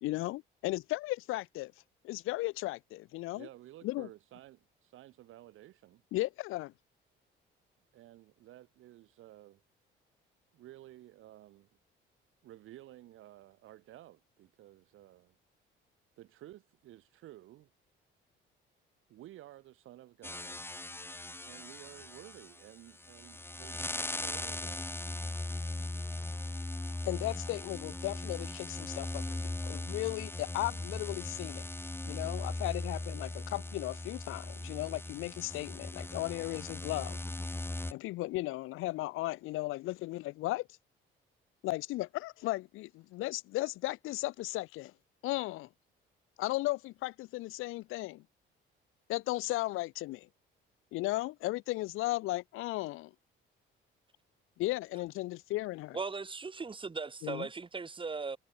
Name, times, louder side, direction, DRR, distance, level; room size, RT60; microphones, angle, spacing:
voice 1, 0.0-1.7 2.0-3.5 3.8-4.1 6.1-6.7 27.0-31.7 32.0-37.2 37.9-40.7 41.6-44.9 45.2-45.7 46.4-48.2 49.1-50.3 50.9-53.1 54.6-56.0 57.2-57.5, left 18 dB, 85° left, 1.4 m, -36 dB
voice 2, 3.3-6.0 7.9-9.6 10.5-11.7 12.4-15.3 16.2-17.7 19.1-20.7 21.4-24.9, right 14 dB, 75° right, 6.1 m, -53 dB
sound 1, 20.2-37.9, left 2 dB, 10° left, 3.2 m, -39 dB
voice 3, 55.9-58.4, right 4 dB, 25° right, 2.0 m, -38 dB
cardioid pair, 95°, 21 cm